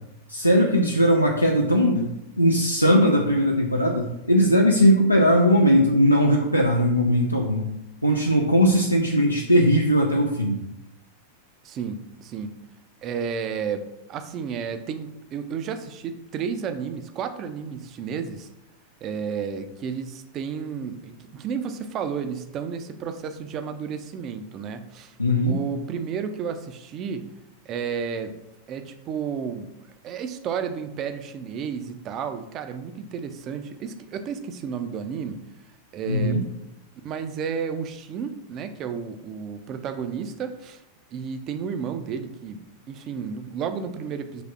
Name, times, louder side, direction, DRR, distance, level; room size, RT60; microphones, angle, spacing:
voice 1, 0.3-7.7 8.0-10.6 25.2-25.6 36.1-36.4, equal, 90° left, 0 dB, 0.3 m, -19 dB
voice 2, 11.6-12.5 13.0-18.5 19.0-25.2 25.4-27.3 27.7-28.3 28.7-29.7 30.0-35.4 35.9-36.4 37.0-40.8 41.1-42.6 42.9-44.4, right 6 dB, 35° right, 9 dB, 0.4 m, -32 dB
5.7 x 3.1 x 2.4 m, 0.87 s
figure-of-eight pair, 90°, 0 cm